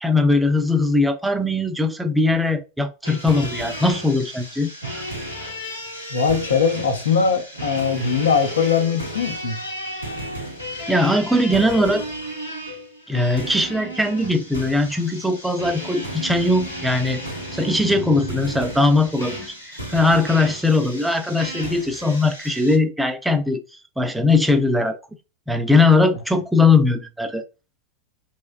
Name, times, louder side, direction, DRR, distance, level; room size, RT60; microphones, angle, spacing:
voice 1, 0.0-4.7 10.9-12.1 13.1-17.2 17.5-23.6 24.0-25.0 25.5-27.4, left 2 dB, 5° right, 0.4 m, -20 dB
sound 1, 3.0-22.8, equal, 85° left, 1.2 m, -33 dB
voice 2, 6.1-9.6, left 6 dB, 70° left, 0.8 m, -21 dB
3.1 x 3.0 x 2.3 m
figure-of-eight pair, 90°, 0 cm